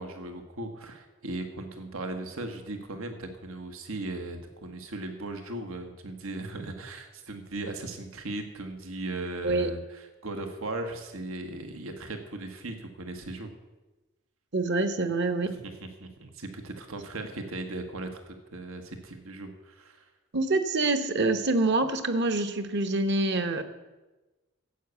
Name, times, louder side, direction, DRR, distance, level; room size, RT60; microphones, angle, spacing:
voice 1, 0.0-13.5 15.5-20.1, right 2 dB, 85° right, 6 dB, 1.4 m, -38 dB
voice 2, 14.5-15.6 20.3-23.6, right 2 dB, 55° right, 9 dB, 1.1 m, -26 dB
12.0 x 8.3 x 8.1 m, 1.1 s
head